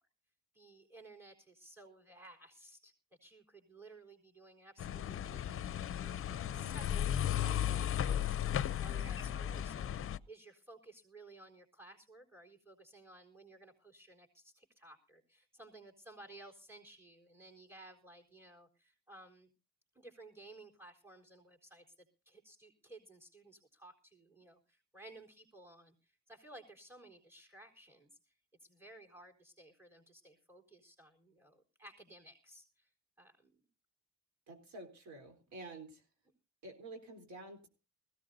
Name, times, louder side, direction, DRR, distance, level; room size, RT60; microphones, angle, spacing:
voice 1, 0.5-2.9 3.2-9.9 10.3-19.5 19.9-28.3 28.6-32.9 33.2-33.7, right 2 dB, 10° right, 1 dB, 4.1 m, -57 dB
sound 1, 4.8-10.2, left 10 dB, 45° left, 0.6 m, -35 dB
voice 2, 34.5-36.0 36.6-37.7, right 2 dB, 70° right, 5 dB, 3.8 m, -49 dB
20.0 x 16.5 x 2.7 m, 0.34 s
cardioid pair, 90°, 30 cm